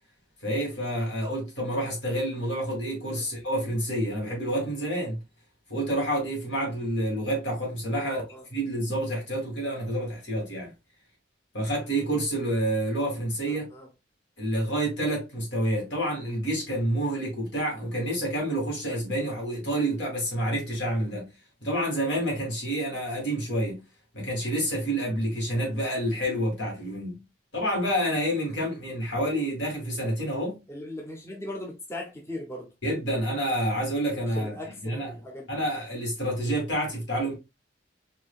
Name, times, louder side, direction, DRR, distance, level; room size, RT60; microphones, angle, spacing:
voice 1, 0.4-5.2 5.7-8.2 8.5-10.7 11.5-13.7 14.4-21.3 21.6-23.8 24.1-27.2 27.5-30.6 32.8-34.6 34.8-35.1 35.5-37.3, right 1 dB, 70° left, 2.3 m, -28 dB
voice 2, 7.9-8.5 13.5-13.9 30.7-32.7 34.3-35.5, left 1 dB, 15° left, 0.8 m, -39 dB
4.8 x 2.8 x 2.4 m
head